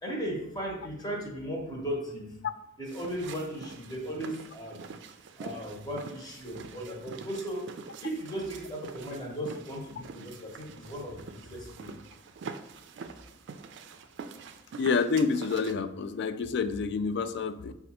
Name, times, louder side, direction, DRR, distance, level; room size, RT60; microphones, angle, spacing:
voice 1, 0.0-2.3 2.8-4.8 5.4-7.7 8.0-11.9, equal, 20° left, -1 dB, 1.0 m, -36 dB
sound 1, 2.9-15.7, right 5 dB, 65° right, 0.3 m, -45 dB
voice 2, 14.8-17.7, left 5 dB, 60° left, 12 dB, 0.3 m, -28 dB
5.3 x 2.4 x 4.2 m, 0.78 s
head